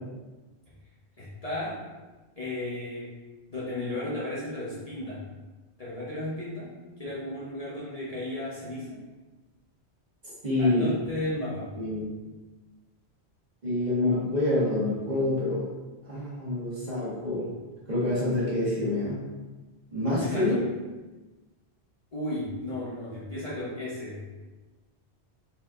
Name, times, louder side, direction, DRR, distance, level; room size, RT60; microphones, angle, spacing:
voice 1, 1.2-1.8 2.4-3.1 3.5-5.2 5.8-6.7 7.0-9.0 10.6-11.7 20.1-20.7 22.1-24.2, left 1 dB, 35° left, -8 dB, 1.0 m, -34 dB
voice 2, 10.2-11.0 11.7-12.1 13.6-15.6 16.1-17.5 17.9-19.3 19.9-20.6, left 2 dB, 40° right, -9 dB, 1.7 m, -27 dB
4.3 x 4.2 x 2.5 m, 1.2 s
omnidirectional pair, 1.2 m